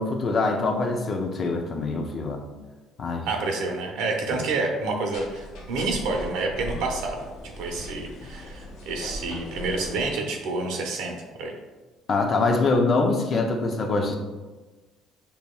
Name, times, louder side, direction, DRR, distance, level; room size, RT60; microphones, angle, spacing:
voice 1, 0.0-2.4 3.0-3.3 4.3-4.4 12.1-14.2, left 3 dB, 35° left, 3 dB, 0.5 m, -24 dB
voice 2, 3.3-11.5, right 3 dB, 85° right, 1 dB, 0.8 m, -29 dB
sound 1, 5.1-10.1, equal, 75° left, 0.9 m, -39 dB
6.7 x 2.9 x 2.3 m, 1.3 s
cardioid pair, 135°, 0 cm